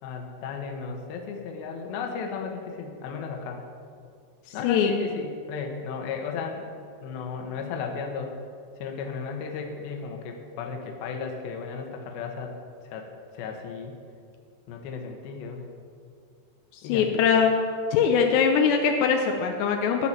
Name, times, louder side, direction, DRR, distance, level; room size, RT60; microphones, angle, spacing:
voice 1, 0.0-3.6 4.5-6.7 7.0-8.4 8.8-12.5 12.8-13.1 13.3-14.0 14.7-15.6 16.8-17.1, left 5 dB, 65° left, 3 dB, 2.9 m, -35 dB
voice 2, 4.5-5.0 16.8-17.6 17.9-20.1, left 6 dB, 85° left, 4 dB, 2.9 m, -22 dB
15.0 x 5.9 x 8.8 m, 2.3 s
omnidirectional pair, 5.0 m